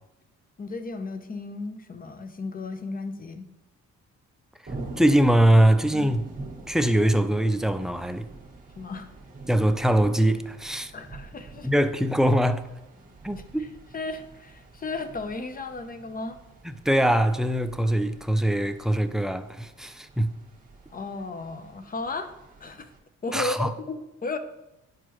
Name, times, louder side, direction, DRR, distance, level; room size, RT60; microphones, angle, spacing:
voice 1, 0.6-3.5 5.9-6.1 8.8-9.1 10.9-11.7 13.4-13.7 13.9-16.4 20.9-22.3 22.6-22.9 23.2-24.4, left 3 dB, 30° left, 0.7 m, -34 dB
sound 1, 4.7-23.0, right 3 dB, 30° right, 1.6 m, -46 dB
voice 2, 5.0-6.2 6.7-8.3 9.5-10.9 11.6-12.7 13.2-13.7 16.6-20.3 23.3-23.7, right 1 dB, ahead, 0.4 m, -22 dB
10.5 x 4.5 x 3.0 m
cardioid pair, 90°, 30 cm